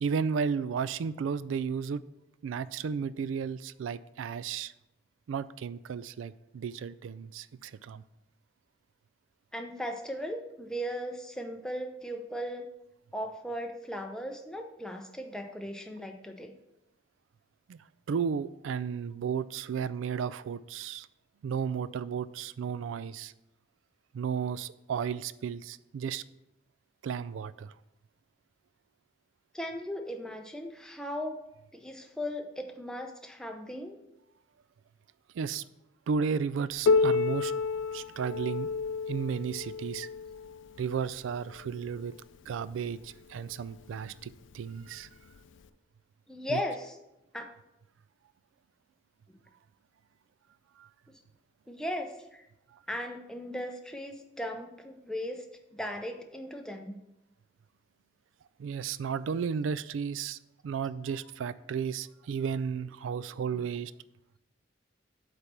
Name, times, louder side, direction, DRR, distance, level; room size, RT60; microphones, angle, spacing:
voice 1, 0.0-2.0 2.4-4.7 5.3-8.0 17.7-17.8 18.1-21.1 21.4-23.3 24.1-26.2 27.0-27.7 35.3-35.6 36.1-37.5 37.9-38.7 39.1-40.1 40.8-42.1 42.5-45.1 46.5-46.6 50.8-50.9 58.6-60.4 60.6-63.9, right 6 dB, 90° right, 17 dB, 0.3 m, -33 dB
voice 2, 9.5-12.7 13.1-16.5 29.5-31.4 31.7-34.0 46.3-47.0 47.3-47.5 51.7-52.4 52.9-55.5 55.7-57.0, equal, 5° left, 4 dB, 0.6 m, -37 dB
Piano, 36.9-42.2 43.0-43.1 43.6-43.7 44.5-44.6 45.6-45.7, left 4 dB, 80° left, 0.4 m, -30 dB
8.2 x 3.4 x 5.8 m, 0.89 s
head